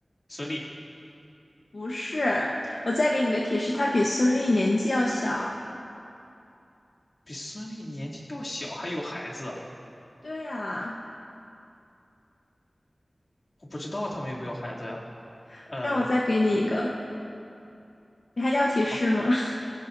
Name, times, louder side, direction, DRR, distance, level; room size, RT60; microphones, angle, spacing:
voice 1, 0.3-0.7 7.3-9.6 13.6-15.0 15.7-16.1, left 1 dB, 50° left, -5 dB, 2.7 m, -35 dB
voice 2, 1.7-5.6 10.2-11.0 15.5-16.9 18.4-19.5, left 1 dB, 75° left, -3 dB, 1.0 m, -25 dB
21.5 x 16.5 x 2.7 m, 2.7 s
wide cardioid pair, 65°, 0 cm